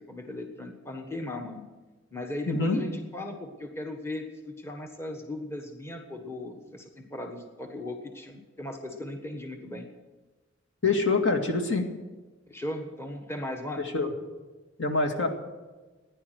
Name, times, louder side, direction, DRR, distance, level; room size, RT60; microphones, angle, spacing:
voice 1, 0.0-1.6 2.1-9.9 12.5-13.8, left 1 dB, 15° left, 3 dB, 1.4 m, -37 dB
voice 2, 2.5-2.8 10.8-11.9 13.9-14.1 14.8-15.3, left 3 dB, 65° left, 3 dB, 2.1 m, -25 dB
16.0 x 10.5 x 7.9 m, 1.3 s
head